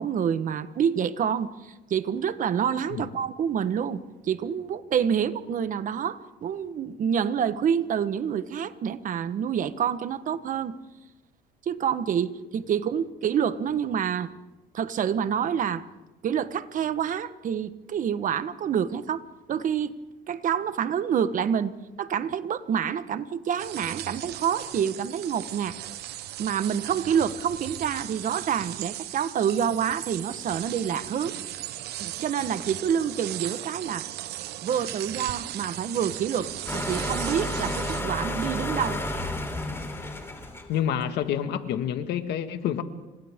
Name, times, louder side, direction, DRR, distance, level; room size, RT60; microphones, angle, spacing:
voice 1, 0.0-10.7 11.7-14.3 14.7-15.8 16.2-19.9 20.3-21.7 22.0-25.8 26.4-31.4 32.0-34.1 34.6-39.0, right 8 dB, 50° right, 12 dB, 1.2 m, -27 dB
sound 1, 23.6-38.0, right 13 dB, 75° right, 1.0 m, -37 dB
sound 2, 36.7-40.9, left 1 dB, 15° left, 3.6 m, -31 dB
voice 2, 40.7-42.8, left 9 dB, 75° left, 7 dB, 1.8 m, -28 dB
29.5 x 26.0 x 3.7 m, 1.1 s
cardioid pair, 110°, 17 cm